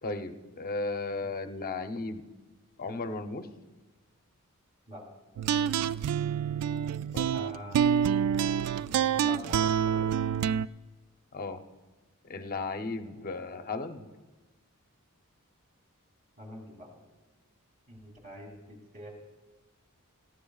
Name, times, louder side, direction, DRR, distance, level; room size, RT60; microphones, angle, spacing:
voice 1, 0.0-2.2 2.8-3.5 7.1-7.3 11.3-11.6 12.2-14.1, left 3 dB, 40° left, 7 dB, 0.7 m, -35 dB
sound 1, 5.4-10.7, right 8 dB, 90° right, 0.3 m, -27 dB
voice 2, 7.3-7.8 8.9-10.1 13.0-13.3 16.4-16.9 17.9-19.1, equal, 35° right, 0 dB, 2.8 m, -45 dB
19.0 x 14.5 x 2.4 m, 1.2 s
head